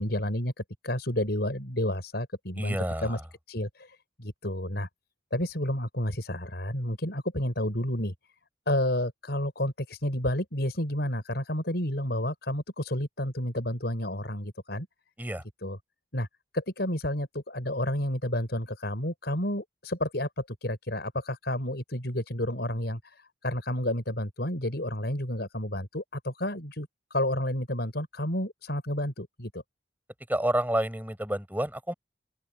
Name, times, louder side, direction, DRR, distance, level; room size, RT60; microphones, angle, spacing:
voice 1, 0.0-3.2 3.5-4.9 5.3-8.1 8.7-14.9 15.6-15.8 16.1-16.3 16.5-29.6, left 1 dB, 65° left, 6.9 m, -30 dB
voice 2, 2.6-3.1 15.2-15.4 30.3-31.9, right 1 dB, 10° right, 7.8 m, -29 dB
open air
head